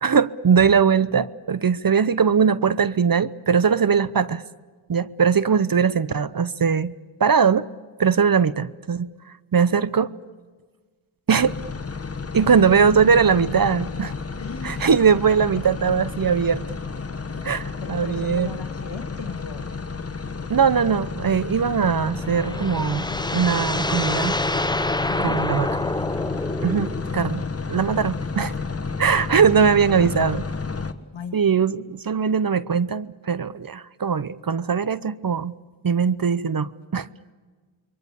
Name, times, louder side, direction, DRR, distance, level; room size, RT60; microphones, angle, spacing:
voice 1, 0.0-4.4 4.9-6.9 7.2-7.7 8.0-9.1 9.5-10.1 11.3-11.6 12.3-14.1 14.6-16.6 17.4-18.5 20.5-23.0 23.3-24.4 25.2-25.7 26.6-28.5 29.0-30.4 31.3-35.6 35.8-37.1, right 6 dB, 45° right, 0.8 m, -20 dB
sound 1, 11.4-30.9, left 4 dB, 30° left, 1.4 m, -31 dB
voice 2, 14.4-14.9 15.3-15.4 17.3-19.7 25.0-25.5 30.0-30.1 31.1-31.4, left 5 dB, 65° left, 2.2 m, -37 dB
sound 2, 22.0-27.1, left 2 dB, 10° left, 0.8 m, -27 dB
28.0 x 23.0 x 7.0 m
cardioid pair, 50°, 49 cm